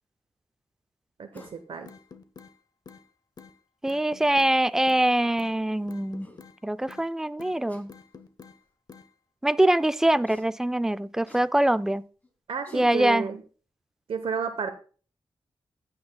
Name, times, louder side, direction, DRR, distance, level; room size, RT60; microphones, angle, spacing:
voice 1, 1.2-1.9 12.5-13.4 14.1-14.7, right 6 dB, 80° right, 0.9 m, -31 dB
sound 1, 1.3-1.6 3.1-3.2 4.7-4.8 5.1-5.3 5.9-6.0 6.2-6.4 7.7-7.9 8.7-8.8 10.3-10.5 11.3-11.5 12.2-12.3 12.6-12.9, left 1 dB, 20° left, 2.3 m, -51 dB
sound 2, 1.4-1.5 1.9-2.5 2.9-3.0 3.4-3.5 3.9-4.5 4.9-5.1 5.4-5.5 5.9-6.6 6.9-7.1 7.4-7.6 7.9-8.6 8.9-9.1, left 5 dB, 45° left, 0.8 m, -47 dB
voice 2, 3.8-6.3 6.6-7.9 9.4-12.0 12.7-13.3, right 1 dB, 5° right, 0.3 m, -23 dB
15.5 x 8.7 x 2.3 m
wide cardioid pair, 120°, 9 cm